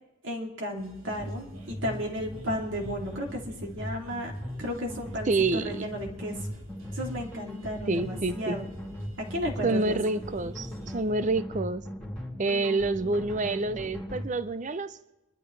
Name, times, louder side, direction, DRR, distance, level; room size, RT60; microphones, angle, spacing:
voice 1, 0.2-4.3 4.6-6.3 6.9-8.7 9.2-10.0, equal, 60° right, 2.9 m, -34 dB
sound 1, 0.8-11.1, right 1 dB, 85° right, 2.3 m, -49 dB
sound 2, 1.0-14.3, equal, 5° left, 2.9 m, -39 dB
voice 2, 5.3-5.9 7.9-8.6 9.6-11.9 12.4-15.0, right 3 dB, 35° right, 0.5 m, -28 dB
25.5 x 12.0 x 3.3 m
head